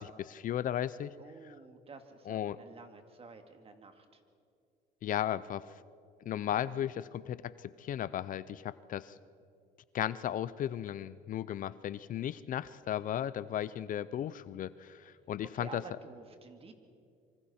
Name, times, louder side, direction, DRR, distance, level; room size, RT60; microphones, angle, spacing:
voice 1, 0.0-1.1 1.5-1.6 2.3-2.6 5.0-5.7 6.3-9.2 9.9-15.8, left 11 dB, 55° left, 17 dB, 0.6 m, -35 dB
voice 2, 1.2-4.2 6.5-6.8 15.5-16.7, right 4 dB, 35° right, 6 dB, 2.2 m, -51 dB
26.0 x 25.0 x 4.4 m, 2.4 s
cardioid pair, 110°, 17 cm